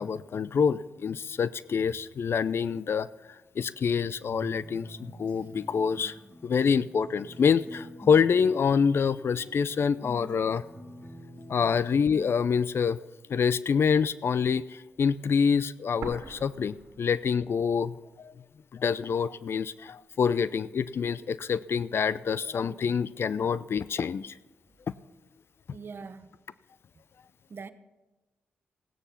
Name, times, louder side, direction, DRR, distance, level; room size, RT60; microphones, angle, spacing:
voice 1, 0.0-3.1 3.6-6.1 6.4-10.6 11.5-13.0 13.3-18.3 18.7-24.3, left 6 dB, 60° left, 0.5 m, -26 dB
sound 1, 4.3-12.3, equal, 25° left, 2.6 m, -46 dB
sound 2, 16.0-18.0 18.2-18.3 19.1-20.0, right 5 dB, 85° right, 1.7 m, -44 dB
voice 2, 25.7-26.3 27.5-27.7, right 5 dB, 55° right, 1.0 m, -42 dB
16.5 x 9.8 x 5.8 m
supercardioid pair, 55°, 5 cm